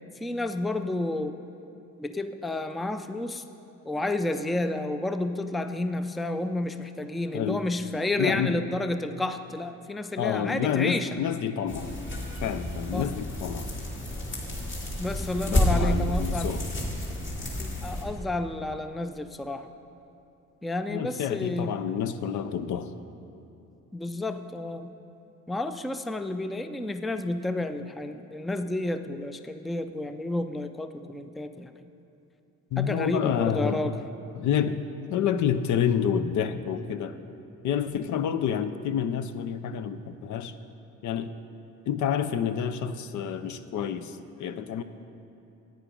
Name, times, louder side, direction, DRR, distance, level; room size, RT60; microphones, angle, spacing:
voice 1, 0.2-1.4 2.0-3.4 3.9-11.1 12.9-13.2 15.0-16.6 17.6-19.7 20.6-21.7 23.9-25.0 25.5-31.7 32.8-33.9, left 2 dB, ahead, 9 dB, 0.3 m, -31 dB
voice 2, 8.2-8.7 10.2-11.9 12.4-13.7 15.5-16.7 20.9-22.9 32.7-34.0 34.3-34.8 35.1-37.2 37.6-40.6 41.0-41.3 41.9-44.8, left 8 dB, 75° left, 11 dB, 0.6 m, -28 dB
sound 1, 11.7-18.0, left 1 dB, 40° left, 2.2 m, -30 dB
9.4 x 9.0 x 5.2 m, 2.8 s
cardioid pair, 90°, 30 cm